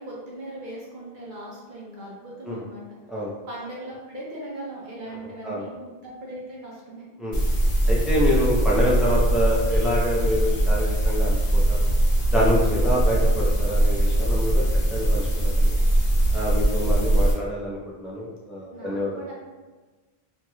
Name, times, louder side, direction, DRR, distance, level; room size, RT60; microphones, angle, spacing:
voice 1, 0.0-2.8 3.5-7.0 18.7-19.3, right 1 dB, 55° right, -5 dB, 0.8 m, -39 dB
voice 2, 5.2-5.7 7.2-7.4 7.9-11.9 12.3-14.6 14.9-15.8 16.3-19.1, equal, ahead, -6 dB, 0.4 m, -26 dB
sound 1, 7.3-17.3, right 1 dB, 60° left, 0.9 m, -21 dB
3.1 x 2.9 x 2.3 m, 1.3 s
omnidirectional pair, 1.0 m